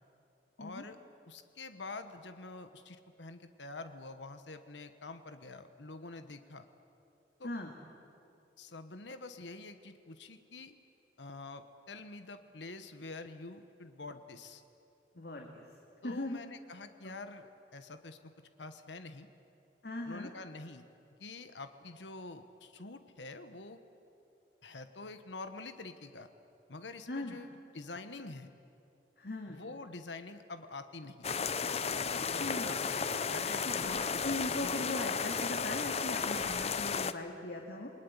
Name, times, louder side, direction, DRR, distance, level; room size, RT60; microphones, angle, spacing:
voice 1, 0.6-1.0 1.3-6.7 7.4-7.5 8.6-10.7 11.2-14.6 16.0-18.3 18.6-19.3 20.0-20.8 21.2-23.8 24.6-26.3 26.7-28.5 29.5-31.4 32.3-34.8, left 3 dB, 75° left, 9 dB, 1.3 m, -47 dB
voice 2, 15.1-15.6 16.0-16.4 17.0-17.1 19.8-20.3 27.1-27.4 29.2-29.6 32.1-32.8 33.6-37.9, left 1 dB, 60° left, 1 dB, 2.4 m, -39 dB
sound 1, 31.2-37.1, left 5 dB, 35° left, 0.8 m, -34 dB
28.0 x 21.0 x 9.8 m, 2.8 s
head